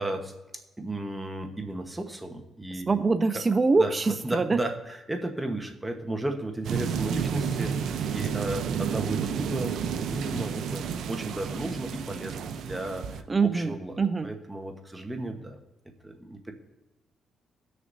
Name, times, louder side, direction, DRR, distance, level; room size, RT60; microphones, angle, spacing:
voice 1, 0.0-3.0 3.3-3.4 3.8-15.6 16.0-16.5, right 1 dB, 10° right, 4 dB, 1.1 m, -34 dB
voice 2, 2.9-4.6 13.3-14.3, right 4 dB, 25° right, 11 dB, 0.4 m, -24 dB
sound 1, 6.6-13.2, right 7 dB, 75° right, 0.6 m, -31 dB
18.5 x 6.5 x 2.6 m, 1.0 s
cardioid pair, 90°, 0 cm